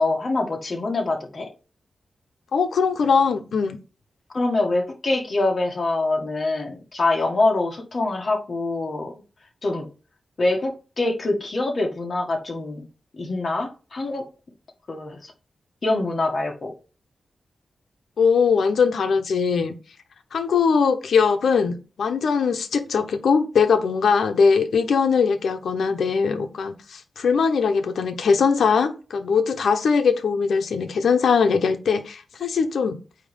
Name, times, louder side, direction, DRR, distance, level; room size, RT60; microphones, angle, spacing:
voice 1, 0.0-1.5 4.3-9.1 9.6-9.9 10.4-12.8 13.1-14.2 14.9-15.3 15.8-16.7, left 2 dB, 40° left, 1.7 m, -24 dB
voice 2, 2.5-3.8 18.2-19.7 20.3-33.0, left 5 dB, 85° left, 1.0 m, -21 dB
9.0 x 3.1 x 5.2 m
wide cardioid pair, 160°, 0 cm